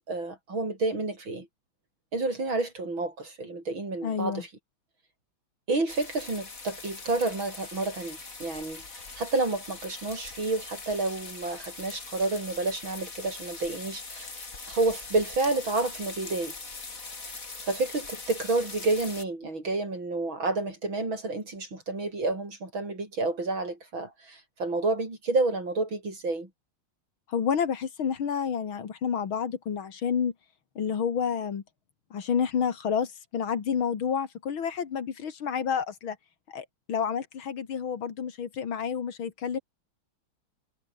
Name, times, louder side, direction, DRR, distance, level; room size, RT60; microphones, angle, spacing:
voice 1, 0.0-1.5 2.1-4.5 5.7-14.3 14.7-16.5 17.6-26.5, right 3 dB, 70° right, 7.2 m, -30 dB
voice 2, 4.0-4.4 27.3-30.3 30.8-31.6 32.1-36.2 36.5-39.6, left 7 dB, 75° left, 2.7 m, -29 dB
sound 1, 5.9-19.2, left 3 dB, 40° left, 3.6 m, -42 dB
omnidirectional pair, 2.3 m